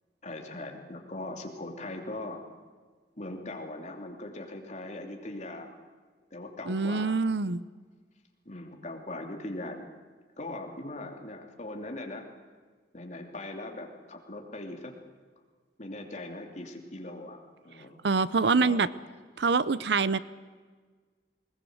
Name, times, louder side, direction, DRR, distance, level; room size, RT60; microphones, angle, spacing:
voice 1, 0.2-2.4 3.2-5.7 6.3-7.2 8.4-9.9 10.4-12.3 12.9-15.0 15.8-18.0 18.5-18.9, left 2 dB, 40° left, 3 dB, 2.8 m, -40 dB
voice 2, 6.7-7.6 18.0-18.9 19.4-20.2, right 4 dB, 70° right, 16 dB, 0.7 m, -25 dB
20.5 x 20.5 x 7.9 m, 1.5 s
head